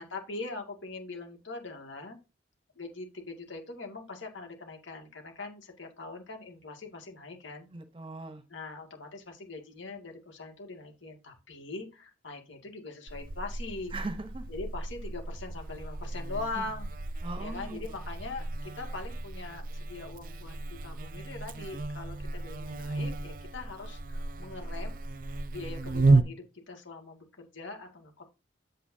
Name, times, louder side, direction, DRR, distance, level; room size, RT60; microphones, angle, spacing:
voice 1, 0.0-2.2 2.8-7.7 8.5-13.9 14.5-16.9 17.4-25.0 25.5-28.2, left 3 dB, 85° left, 3 dB, 2.3 m, -42 dB
voice 2, 7.7-8.4 13.9-14.4 16.6-16.7 17.2-17.9, right 3 dB, 30° right, 9 dB, 0.9 m, -39 dB
Buzz, 13.1-26.2, right 3 dB, 45° right, 0.5 m, -32 dB
8.6 x 7.9 x 2.8 m, 0.29 s
head